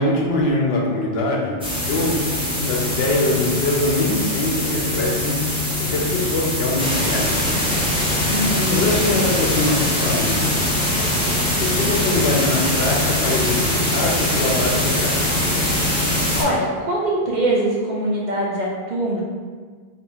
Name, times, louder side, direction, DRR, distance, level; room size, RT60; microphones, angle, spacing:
voice 1, 0.0-1.6 1.9-5.4 5.9-7.3 8.7-10.3 11.6-15.1, left 2 dB, 75° left, -2 dB, 0.9 m, -23 dB
sound 1, 1.6-16.4, left 1 dB, 10° right, 0.4 m, -22 dB
voice 2, 8.3-8.8 16.4-19.2, right 1 dB, 55° right, -4 dB, 0.6 m, -22 dB
2.7 x 2.5 x 3.5 m, 1.6 s
omnidirectional pair, 1.1 m